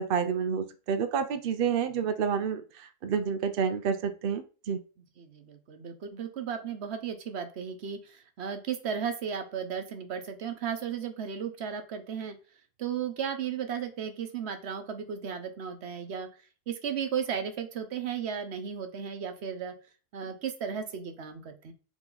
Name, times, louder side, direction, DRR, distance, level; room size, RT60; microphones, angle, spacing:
voice 1, 0.0-4.8, right 6 dB, 75° right, 9 dB, 0.5 m, -29 dB
voice 2, 5.2-12.4 12.8-16.3 16.7-19.7 20.1-21.7, right 7 dB, 50° right, 7 dB, 1.0 m, -35 dB
8.2 x 3.1 x 3.8 m, 0.36 s
omnidirectional pair, 1.7 m